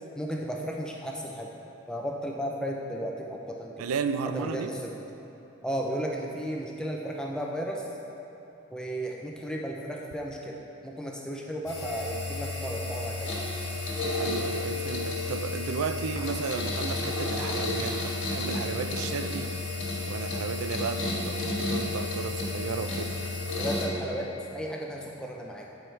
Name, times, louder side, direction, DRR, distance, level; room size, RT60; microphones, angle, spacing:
voice 1, 0.2-1.5 1.9-3.9 4.3-4.9 5.6-7.9 8.7-13.3 23.6-25.7, equal, 5° left, -1 dB, 0.4 m, -34 dB
voice 2, 3.8-4.7 14.2-19.5 20.1-23.2, right 6 dB, 90° right, 10 dB, 0.4 m, -34 dB
sound 1, 11.7-23.9, left 2 dB, 60° left, 1.5 m, -32 dB
12.0 x 4.7 x 3.2 m, 3.0 s
head